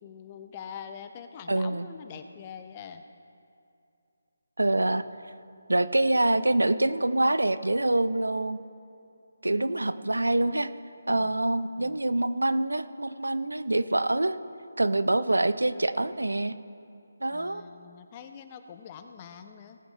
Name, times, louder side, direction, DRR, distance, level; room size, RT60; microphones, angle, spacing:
voice 1, 0.0-3.0 5.1-5.2 9.5-9.9 11.1-12.0 17.3-19.8, left 7 dB, 25° left, 8 dB, 0.7 m, -45 dB
voice 2, 1.5-1.9 4.6-5.0 5.7-8.6 9.4-10.7 11.1-14.4 14.8-16.5 17.2-17.6, right 2 dB, 85° right, 14 dB, 0.5 m, -25 dB
18.5 x 7.9 x 4.3 m, 2.6 s
figure-of-eight pair, 155°, 0 cm